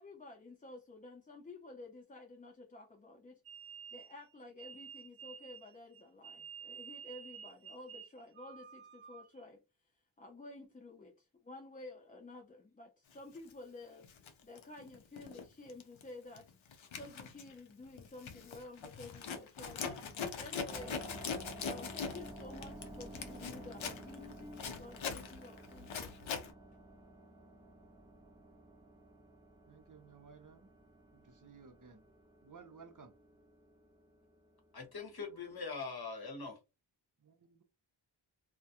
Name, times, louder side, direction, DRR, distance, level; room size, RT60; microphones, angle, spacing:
voice 1, 0.0-3.4 3.9-9.6 10.2-14.1 14.4-21.1 21.6-26.1, left 2 dB, 20° left, 0.3 m, -52 dB
sound 1, 3.4-9.4, right 8 dB, 90° right, 0.6 m, -51 dB
Zipper (clothing), 13.3-13.5 14.0-15.4 15.7-16.0 16.4-26.5, left 6 dB, 75° left, 0.6 m, -42 dB
sound 2, 20.7-35.6, right 1 dB, 5° right, 0.8 m, -53 dB
voice 2, 29.7-30.7 31.1-32.0 32.4-33.2 37.2-37.6, right 5 dB, 40° right, 0.6 m, -57 dB
voice 3, 34.7-36.6, left 4 dB, 50° left, 0.9 m, -42 dB
2.3 x 2.1 x 2.7 m
wide cardioid pair, 50°, 48 cm